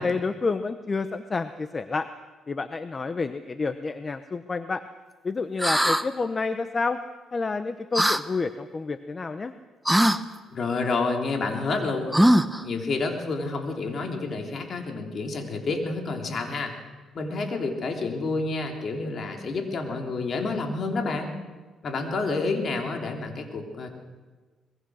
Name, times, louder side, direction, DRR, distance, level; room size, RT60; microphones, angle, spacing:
voice 1, 0.0-2.1 2.5-4.8 5.2-7.0 7.3-9.5, left 4 dB, 30° left, 11 dB, 0.9 m, -29 dB
sound 1, 5.6-6.0 7.9-8.2 9.8-10.2 12.1-12.6, equal, 5° right, 0.9 m, -20 dB
voice 2, 10.5-12.2 12.6-16.7 17.1-21.3 21.8-23.9, left 3 dB, 50° left, 3 dB, 3.5 m, -29 dB
24.0 x 21.0 x 6.4 m, 1.4 s
cardioid pair, 90°, 0 cm